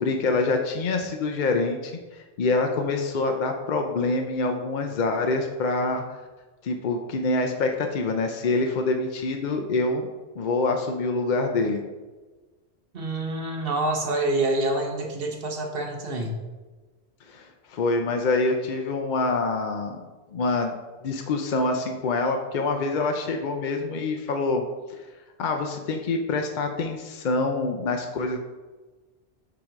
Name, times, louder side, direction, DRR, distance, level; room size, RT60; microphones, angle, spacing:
voice 1, 0.0-6.0 6.6-10.1 10.4-11.8 17.3-20.0 20.3-20.8 21.0-24.6 24.9-25.0 25.4-28.5, left 3 dB, 55° left, 4 dB, 0.6 m, -26 dB
voice 2, 12.9-16.4, right 2 dB, 60° right, 2 dB, 1.1 m, -27 dB
7.4 x 3.0 x 5.0 m, 1.3 s
omnidirectional pair, 1.2 m